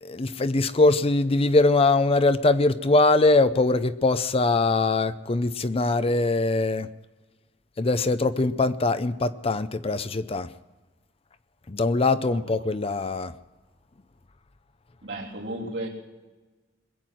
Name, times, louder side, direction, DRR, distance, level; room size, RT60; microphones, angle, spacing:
voice 1, 0.0-6.9 7.8-10.5 11.7-13.3, left 2 dB, 30° left, 0.5 m, -22 dB
voice 2, 15.0-15.9, right 1 dB, 75° right, 3.4 m, -33 dB
21.5 x 8.2 x 7.6 m
head